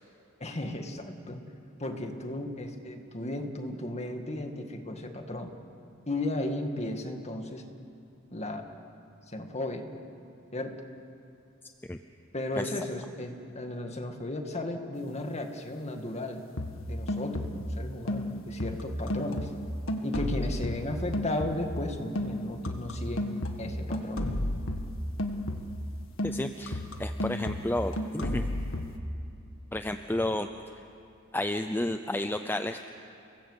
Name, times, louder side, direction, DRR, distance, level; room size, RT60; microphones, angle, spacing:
voice 1, 0.4-1.4 1.8-5.5 6.1-7.6 8.3-8.7 9.3-9.9 10.5-10.7 12.3-16.4 16.9-19.5 20.0-23.3 23.6-24.3, left 1 dB, 35° left, 5 dB, 2.1 m, -35 dB
sound 1, 16.6-17.8 18.1-21.9 22.1-25.9 26.2-29.0, left 1 dB, 75° left, 1.7 m, -33 dB
voice 2, 26.2-28.4 29.7-30.5 31.3-32.9, left 1 dB, 10° left, 8 dB, 0.6 m, -31 dB
30.0 x 19.5 x 8.2 m, 2.7 s
head